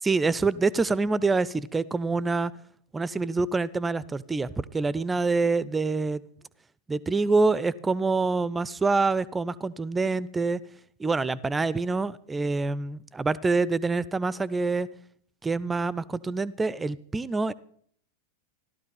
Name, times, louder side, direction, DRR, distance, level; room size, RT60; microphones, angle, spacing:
voice 1, 0.0-2.5 2.9-6.2 6.9-10.6 11.0-14.9 15.4-17.5, right 3 dB, 10° right, 21 dB, 0.6 m, -26 dB
15.5 x 12.5 x 5.4 m, 0.63 s
figure-of-eight pair, 90°, 0 cm